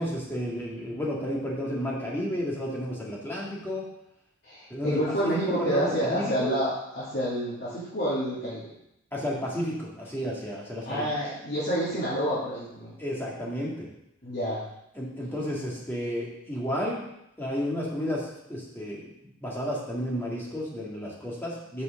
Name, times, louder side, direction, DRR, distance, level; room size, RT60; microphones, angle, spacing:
voice 1, 0.0-3.9 4.7-6.5 9.1-11.0 13.0-13.9 15.0-17.1 17.4-19.1 19.4-21.8, equal, 10° left, -5 dB, 2.0 m, -32 dB
voice 2, 4.4-8.7 10.8-13.0 14.2-14.6, equal, 55° left, -11 dB, 2.8 m, -28 dB
6.4 x 5.7 x 6.5 m, 0.82 s
head